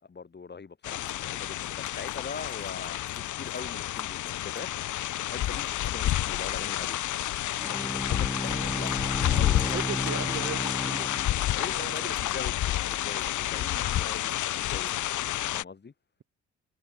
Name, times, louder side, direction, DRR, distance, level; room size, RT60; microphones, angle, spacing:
voice 1, 0.0-4.7 5.2-7.0 7.7-10.2 11.5-15.0 15.5-15.9, left 5 dB, 35° left, 7.0 m, -42 dB
sound 1, 0.8-15.6, left 13 dB, 80° left, 2.9 m, -30 dB
Bowed string instrument, 7.6-12.0, equal, ahead, 4.1 m, -35 dB
voice 2, 9.7-11.2 11.7-12.2, right 7 dB, 50° right, 4.4 m, -38 dB
cardioid pair, 90°, 30 cm